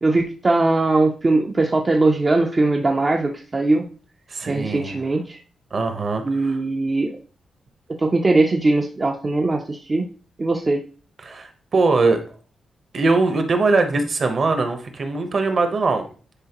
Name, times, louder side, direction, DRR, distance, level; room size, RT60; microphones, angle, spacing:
voice 1, 0.0-3.8 4.5-5.4 6.2-7.2 8.0-10.0 10.4-10.8, right 2 dB, 25° right, 2 dB, 0.5 m, -20 dB
voice 2, 4.3-5.0 5.7-6.6 11.2-12.2 12.9-16.1, right 3 dB, 40° right, 7 dB, 0.9 m, -21 dB
9.9 x 4.4 x 2.9 m, 0.40 s
wide cardioid pair, 175°, 0 cm